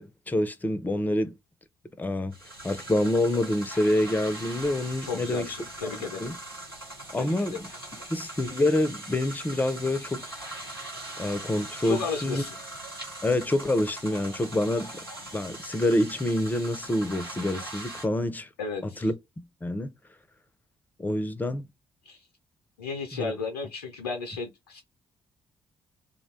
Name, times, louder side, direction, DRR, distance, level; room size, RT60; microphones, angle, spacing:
voice 1, 0.0-1.3 2.0-2.3 2.6-5.5 6.2-6.3 7.1-7.7 8.1-10.3 11.2-12.5 13.2-15.0 15.3-18.5 18.8-19.2 19.6-19.9 21.0-21.7 23.1-23.3, left 1 dB, 15° left, 0.5 m, -27 dB
sound 1, 2.3-18.1, right 1 dB, 90° right, 0.6 m, -41 dB
voice 2, 5.0-6.3 7.1-7.5 11.8-12.6 18.6-19.1 22.0-22.3 22.8-24.8, left 4 dB, 80° left, 0.4 m, -34 dB
2.7 x 2.1 x 2.6 m
figure-of-eight pair, 40°, 12 cm